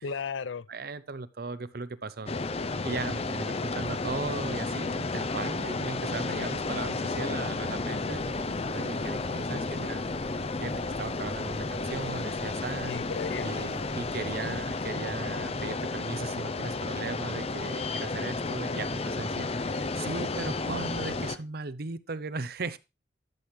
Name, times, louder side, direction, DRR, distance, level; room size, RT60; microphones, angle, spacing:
voice 1, 0.0-0.7 12.9-13.7, left 5 dB, 85° left, 0.5 m, -35 dB
voice 2, 0.7-2.3 2.8-8.5 8.7-10.0 10.6-13.0 13.4-22.8, right 3 dB, 55° right, 0.7 m, -37 dB
sound 1, 2.3-21.4, left 3 dB, 35° left, 0.6 m, -32 dB
sound 2, 8.2-14.9, right 1 dB, 85° right, 2.2 m, -53 dB
12.0 x 7.6 x 3.2 m
head